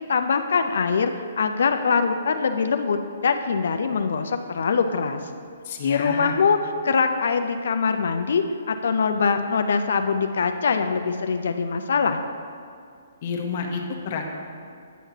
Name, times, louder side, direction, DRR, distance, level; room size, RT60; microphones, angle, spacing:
voice 1, 0.1-5.2 5.8-6.6 6.8-12.2, left 5 dB, 70° left, 8 dB, 0.4 m, -23 dB
voice 2, 5.6-6.3 13.2-14.2, left 5 dB, 50° left, 1 dB, 0.8 m, -29 dB
9.0 x 5.7 x 2.8 m, 2.3 s
hypercardioid pair, 145°, 0 cm